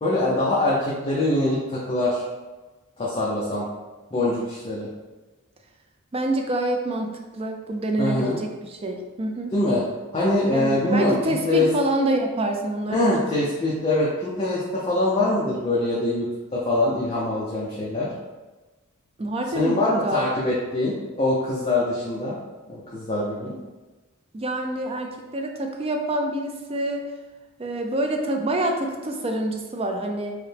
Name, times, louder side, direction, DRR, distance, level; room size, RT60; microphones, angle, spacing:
voice 1, 0.0-2.2 3.0-3.7 4.1-4.9 8.0-8.4 9.5-9.8 10.1-11.7 12.9-18.1 19.6-22.4 22.7-23.6, left 2 dB, 25° left, -6 dB, 0.6 m, -23 dB
voice 2, 6.1-9.5 10.5-13.4 19.2-20.3 24.3-27.0 27.6-30.3, right 1 dB, 25° right, 3 dB, 0.4 m, -27 dB
4.7 x 2.1 x 3.4 m, 1.2 s
head